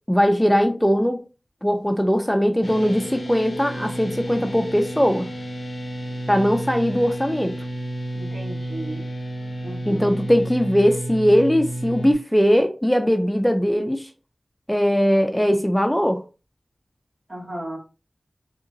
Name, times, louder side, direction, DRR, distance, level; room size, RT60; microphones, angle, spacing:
voice 1, 0.1-1.2 1.6-5.3 6.3-7.5 9.9-14.1 14.7-16.2, equal, 5° left, 0.5 m, -20 dB
sound 1, 2.6-12.1, right 1 dB, 65° left, 0.6 m, -31 dB
voice 2, 8.1-9.1 9.6-10.2 17.3-17.8, right 1 dB, 60° right, 2.0 m, -35 dB
3.7 x 2.9 x 2.6 m
wide cardioid pair, 55°, 0 cm